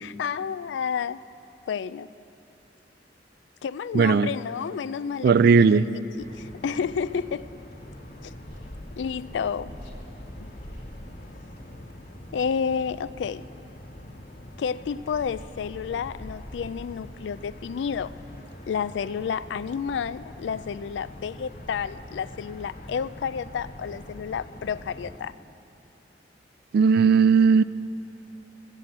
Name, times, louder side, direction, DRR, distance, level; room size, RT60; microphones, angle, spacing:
voice 1, 0.0-1.2 1.7-2.1 3.6-7.5 8.2-8.3 9.0-9.7 12.3-13.4 14.6-18.1 18.7-25.3, left 6 dB, 80° left, 16 dB, 0.3 m, -30 dB
voice 2, 3.9-4.3 5.2-5.9 26.7-27.6, right 5 dB, 60° right, 16 dB, 0.3 m, -17 dB
sound 1, 6.2-25.2, left 1 dB, 55° left, 1.8 m, -43 dB
14.5 x 7.7 x 8.5 m, 2.7 s
head